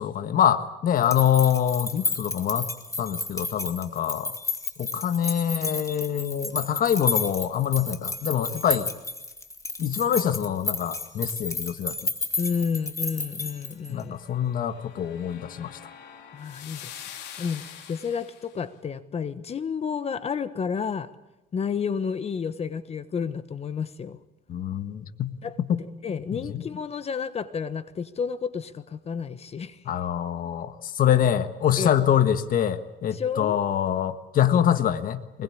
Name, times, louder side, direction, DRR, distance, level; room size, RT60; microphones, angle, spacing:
voice 1, 0.0-2.7 3.0-4.3 4.8-8.9 9.8-11.9 13.8-15.8 24.5-25.4 25.7-25.8 26.3-26.6 29.8-35.4, left 9 dB, 55° left, 10 dB, 1.5 m, -25 dB
sound 1, 1.0-14.0, left 3 dB, 20° left, 2.6 m, -32 dB
voice 2, 12.4-14.1 16.3-16.9 17.4-17.6 17.9-21.1 21.5-24.2 25.4-25.6 26.0-29.8 31.8-31.9 33.1-33.6, left 6 dB, 40° left, 13 dB, 1.3 m, -30 dB
sound 2, 13.9-18.6, left 9 dB, 80° left, 3.8 m, -44 dB
23.5 x 21.5 x 8.6 m, 0.96 s
cardioid pair, 110°, 17 cm